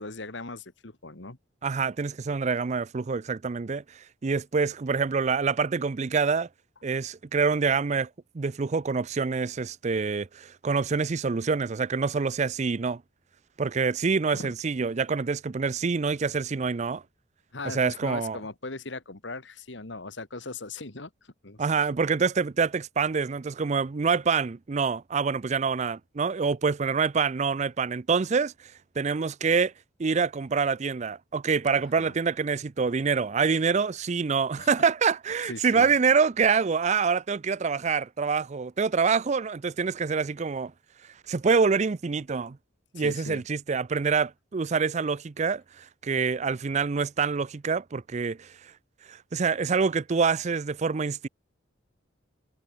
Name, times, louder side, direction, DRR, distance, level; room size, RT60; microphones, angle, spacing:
voice 1, 0.0-1.4 14.3-14.5 17.5-21.9 32.0-32.1 34.6-34.9 35.5-35.9 42.9-43.4, left 3 dB, 65° left, 2.1 m, -39 dB
voice 2, 1.6-6.5 6.8-8.1 8.3-13.0 13.6-17.0 17.7-18.4 21.6-28.5 29.0-29.7 30.0-40.7 41.3-42.6 42.9-48.7 49.1-51.3, right 5 dB, 35° right, 0.4 m, -26 dB
head